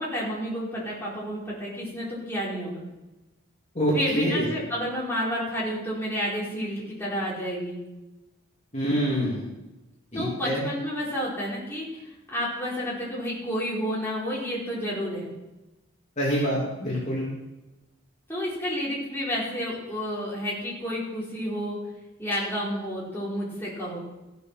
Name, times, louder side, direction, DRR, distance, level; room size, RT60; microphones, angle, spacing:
voice 1, 0.0-2.8 3.9-7.8 10.1-15.3 18.3-21.8 22.2-24.0, equal, 10° left, -7 dB, 4.6 m, -30 dB
voice 2, 3.7-4.5 8.7-9.4 10.1-10.6 16.2-17.3, equal, 35° left, -6 dB, 3.2 m, -26 dB
15.0 x 9.2 x 6.1 m, 1.0 s
head